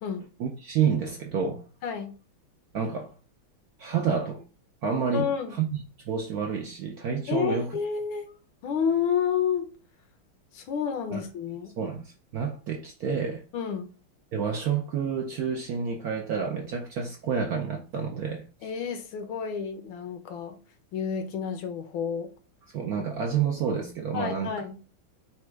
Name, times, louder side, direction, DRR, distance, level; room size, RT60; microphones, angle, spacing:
voice 1, 0.4-1.6 2.7-3.1 3.8-4.5 4.8-5.2 5.5-7.7 11.1-11.2 11.8-13.4 14.3-18.4 22.7-24.5, right 6 dB, 70° right, 0.9 m, -29 dB
voice 2, 1.8-2.1 5.1-5.6 7.3-8.3 8.6-9.7 10.5-11.7 13.5-13.9 18.6-20.6 20.9-22.3 24.1-24.8, left 7 dB, 75° left, 1.5 m, -30 dB
4.2 x 2.3 x 4.5 m
omnidirectional pair, 2.2 m